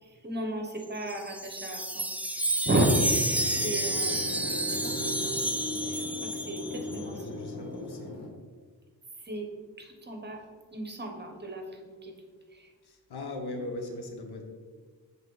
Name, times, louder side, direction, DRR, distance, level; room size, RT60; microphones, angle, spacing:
voice 1, 0.0-5.4 5.7-7.4 9.2-9.5 9.8-10.4 10.7-12.1 12.5-12.7, right 1 dB, 25° right, 3 dB, 1.0 m, -33 dB
Wind chime, 0.8-7.0, right 1 dB, 5° right, 0.4 m, -30 dB
sound 1, 2.7-8.3, left 2 dB, 40° left, 1.6 m, -38 dB
voice 2, 7.1-8.2 12.8-14.4, left 2 dB, 75° left, 3 dB, 1.1 m, -39 dB
7.3 x 3.7 x 3.9 m, 1.5 s
cardioid pair, 95°, 39 cm